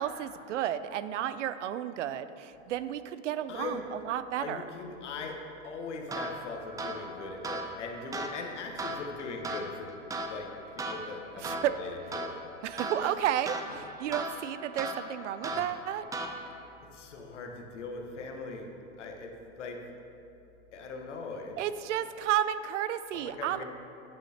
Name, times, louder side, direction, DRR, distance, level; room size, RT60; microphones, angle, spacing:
voice 1, 0.0-4.6 11.4-11.8 12.6-16.1 21.6-23.6, right 11 dB, 85° right, 13 dB, 0.5 m, -32 dB
voice 2, 3.5-3.8 4.4-5.4 5.6-9.9 10.2-10.5 10.9-12.3 15.5-15.6 16.9-18.7 19.0-19.8 20.7-21.6 23.1-23.6, left 4 dB, 80° left, 2 dB, 1.2 m, -40 dB
sound 1, 6.1-16.7, right 1 dB, 10° right, 0.4 m, -38 dB
8.7 x 8.4 x 2.9 m, 2.9 s
hypercardioid pair, 110°, 35 cm